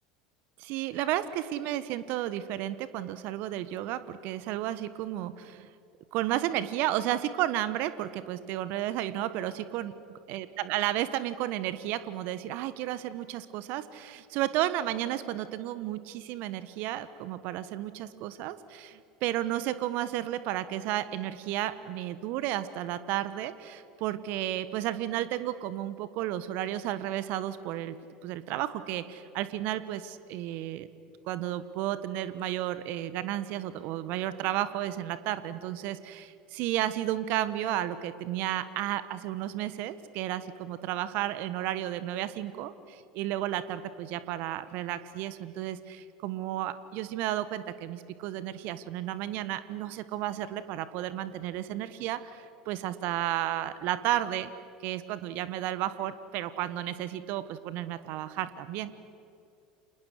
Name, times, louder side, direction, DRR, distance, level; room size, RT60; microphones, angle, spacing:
voice 1, 0.6-5.7 6.1-9.9 10.3-28.0 28.2-30.9 31.3-54.5 54.8-58.9, right 13 dB, 55° right, 14 dB, 1.4 m, -32 dB
30.0 x 28.0 x 6.7 m, 2.5 s
hypercardioid pair, 75°, 4 cm